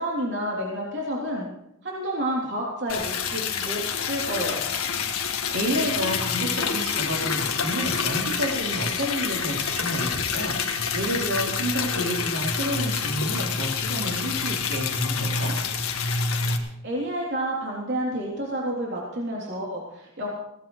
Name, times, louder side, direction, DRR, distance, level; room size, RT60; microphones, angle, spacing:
voice 1, 0.0-1.5 1.8-4.6 16.5-20.3, right 1 dB, 55° right, -3 dB, 3.3 m, -30 dB
Liquid, 2.9-16.6, left 5 dB, 90° left, 1.6 m, -27 dB
voice 2, 5.2-15.5, equal, 75° right, -2 dB, 3.9 m, -30 dB
21.5 x 17.5 x 3.2 m, 0.81 s
head